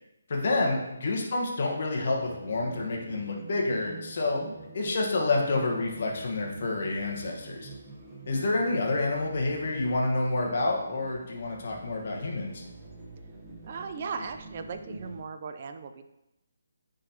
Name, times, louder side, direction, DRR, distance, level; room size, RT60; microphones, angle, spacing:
voice 1, 0.3-4.4 4.7-7.7 8.3-12.6, left 2 dB, 50° left, -1 dB, 1.2 m, -28 dB
sound 1, 2.2-15.2, right 3 dB, 15° right, 1.0 m, -47 dB
voice 2, 13.6-16.0, right 5 dB, 40° right, 8 dB, 0.5 m, -38 dB
9.5 x 3.9 x 2.9 m, 0.90 s
figure-of-eight pair, 145°, 0 cm